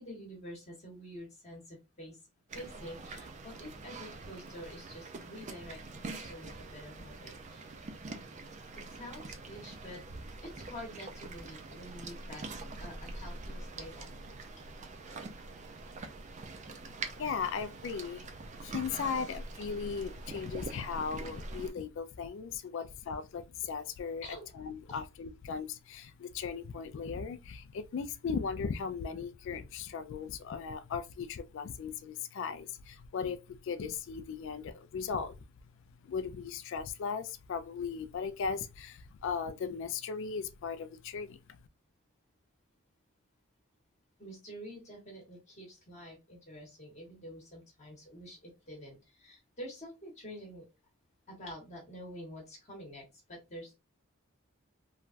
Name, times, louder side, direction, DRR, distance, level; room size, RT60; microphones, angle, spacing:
voice 1, 0.0-2.2 2.5-8.2 8.8-10.0 10.4-12.5 12.8-14.1 24.2-24.5 24.9-25.0 44.2-50.6 51.3-53.7, equal, 30° left, 1.0 m, -48 dB
sound 1, 2.5-21.7, right 3 dB, 35° right, 0.3 m, -44 dB
voice 2, 17.2-18.3 18.6-35.5 36.0-41.6, left 6 dB, 60° left, 0.3 m, -37 dB
3.1 x 2.2 x 2.4 m
head